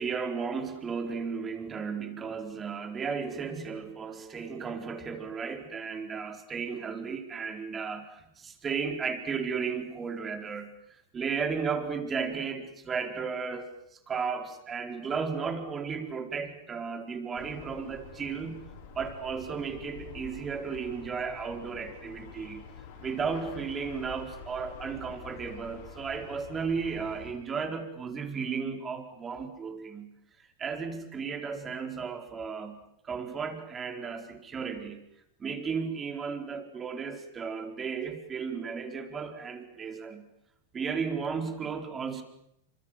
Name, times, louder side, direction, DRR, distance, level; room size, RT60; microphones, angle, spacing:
voice 1, 0.0-18.6 18.9-22.6 23.0-30.1 30.6-32.8 33.0-35.0 35.4-40.2 40.7-42.2, right 5 dB, 20° right, 6 dB, 4.5 m, -34 dB
sound 1, 17.4-27.3, left 6 dB, 60° left, 7.0 m, -47 dB
27.5 x 25.0 x 7.6 m, 0.78 s
supercardioid pair, 130°, 0 cm